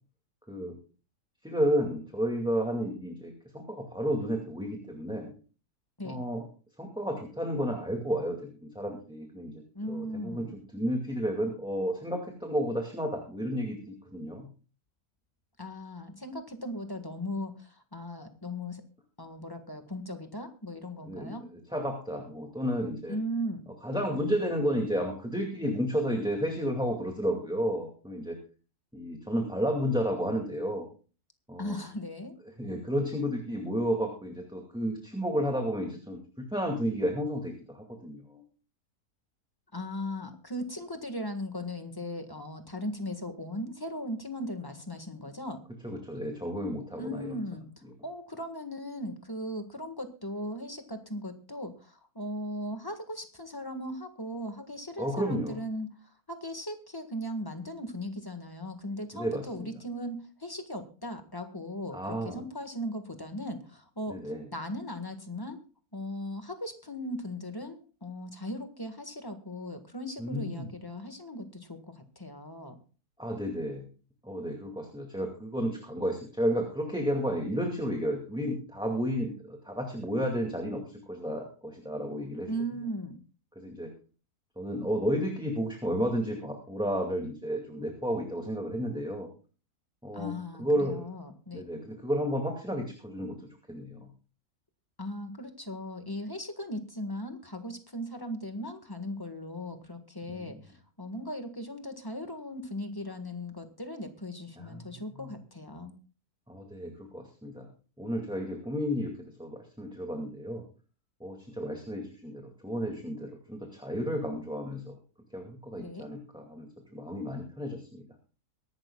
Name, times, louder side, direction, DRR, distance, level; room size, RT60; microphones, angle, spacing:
voice 1, 1.4-5.3 6.0-6.4 6.8-9.5 9.9-10.4 10.7-14.5 21.0-21.4 21.7-23.2 23.8-28.4 28.9-30.9 31.5-31.7 32.6-38.4 45.8-47.4 55.0-55.6 59.1-59.7 61.9-62.4 64.1-64.4 70.2-70.7 73.2-73.8 74.2-82.5 83.6-83.9 84.6-89.3 90.0-90.3 90.6-91.0 91.5-93.3 93.7-94.1 100.3-100.6 104.6-104.8 106.5-107.7 108.0-109.1 109.4-110.6 111.2-114.9 115.3-118.0, equal, 5° right, 1 dB, 2.2 m, -32 dB
voice 2, 9.7-10.5 15.6-18.8 19.2-21.4 23.1-23.6 31.6-32.3 39.7-45.6 46.9-47.6 48.0-55.9 56.3-64.1 64.5-65.6 65.9-72.8 82.5-83.2 90.1-91.6 95.0-105.9 115.8-116.0, equal, 15° left, 6 dB, 1.5 m, -38 dB
23.5 x 11.5 x 2.3 m, 0.37 s
omnidirectional pair, 1.6 m